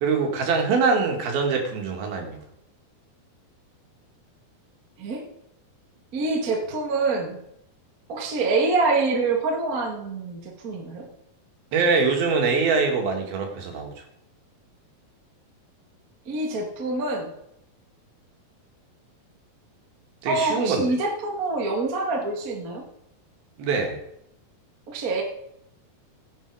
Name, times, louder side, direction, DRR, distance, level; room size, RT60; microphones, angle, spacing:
voice 1, 0.0-2.4 11.7-13.9 20.2-20.9 23.6-24.0, right 4 dB, 75° right, 2 dB, 3.8 m, -23 dB
voice 2, 6.1-7.4 8.1-11.1 16.2-17.3 20.2-22.8 24.9-25.2, right 3 dB, 35° right, 1 dB, 1.5 m, -26 dB
17.0 x 7.7 x 4.8 m, 0.79 s
omnidirectional pair, 4.3 m